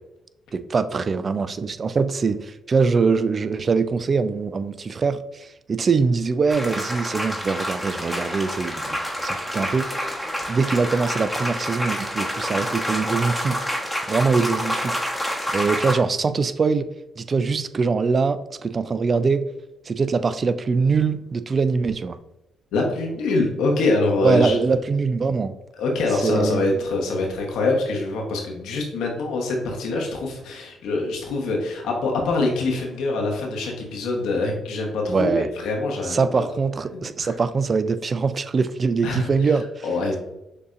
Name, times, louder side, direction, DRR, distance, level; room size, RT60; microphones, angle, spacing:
voice 1, 0.5-10.2 10.5-13.6 14.1-14.9 15.5-16.9 17.2-19.5 19.9-22.2 24.2-25.6 26.2-26.7 35.1-35.5 36.1-39.8, right 4 dB, 45° right, 0.3 m, -23 dB
sound 1, 6.5-15.9, equal, ahead, 1.1 m, -28 dB
voice 2, 22.7-24.6 25.8-36.5 36.9-37.3 39.0-39.5 39.8-40.2, left 2 dB, 80° left, 1.0 m, -24 dB
6.5 x 2.7 x 2.5 m
supercardioid pair, 60°, 0 cm